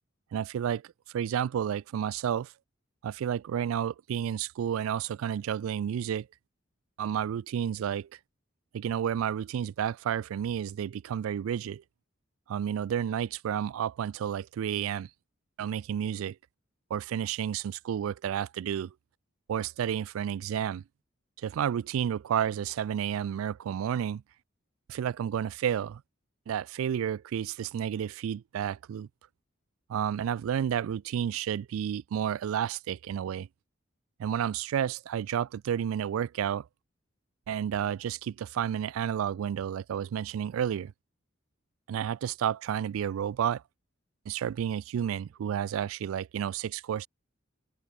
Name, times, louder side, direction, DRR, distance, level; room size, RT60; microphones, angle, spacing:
voice 1, 0.3-0.8 1.1-2.5 3.0-6.3 7.0-8.1 8.7-11.8 12.5-15.1 15.6-16.4 16.9-18.9 19.5-20.8 21.4-24.2 24.9-26.0 26.5-29.1 29.9-33.5 34.2-36.7 37.5-40.9 41.9-43.6 44.3-47.1, right 9 dB, 85° right, 0.3 m, -31 dB
open air
head